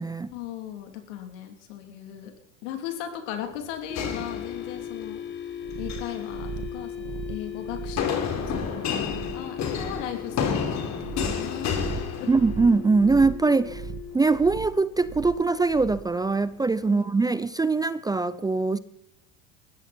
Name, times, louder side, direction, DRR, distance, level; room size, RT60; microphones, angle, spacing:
voice 1, 0.3-2.3 2.6-5.4 5.8-12.3 16.9-17.4, left 10 dB, 75° left, 5 dB, 3.5 m, -38 dB
sound 1, 3.9-5.0 5.7-6.2 8.0-12.8, left 7 dB, 50° left, 3.7 m, -30 dB
sound 2, 3.9-14.2, left 9 dB, 30° left, 2.2 m, -38 dB
sound 3, 5.6-16.2, right 6 dB, 55° right, 2.6 m, -39 dB
voice 2, 12.3-13.8 14.1-18.8, right 3 dB, 10° right, 16 dB, 0.5 m, -22 dB
20.5 x 14.5 x 4.5 m, 0.75 s
supercardioid pair, 95°, 36 cm